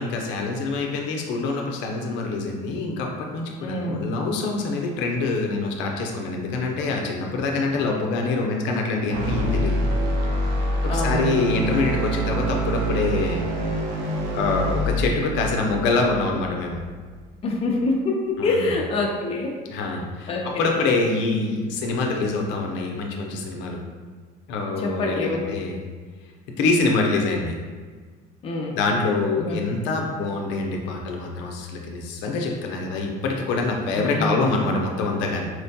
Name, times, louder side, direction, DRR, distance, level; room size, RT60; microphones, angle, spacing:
voice 1, 0.0-9.8 10.8-13.4 14.3-16.8 18.4-18.6 19.7-23.8 24.5-25.8 26.6-27.6 28.7-35.5, left 3 dB, 80° left, 1 dB, 0.6 m, -25 dB
voice 2, 3.6-4.1 10.8-11.5 17.4-19.6 20.3-20.6 24.8-25.5 28.4-28.7 29.4-29.8 33.9-34.5, left 2 dB, 30° left, -1 dB, 0.5 m, -26 dB
sound 1, 9.1-17.2, right 1 dB, 80° right, 0.6 m, -26 dB
4.3 x 2.2 x 2.7 m, 1.5 s
cardioid pair, 130°, 19 cm